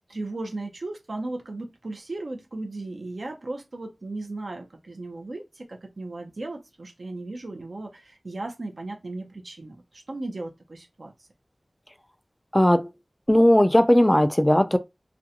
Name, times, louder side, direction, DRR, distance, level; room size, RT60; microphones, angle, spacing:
voice 1, 0.1-11.1, right 2 dB, 85° right, 0.6 m, -36 dB
voice 2, 12.5-12.9 13.3-14.8, left 1 dB, 15° left, 0.3 m, -17 dB
2.5 x 2.1 x 2.8 m
wide cardioid pair, 45°, 0 cm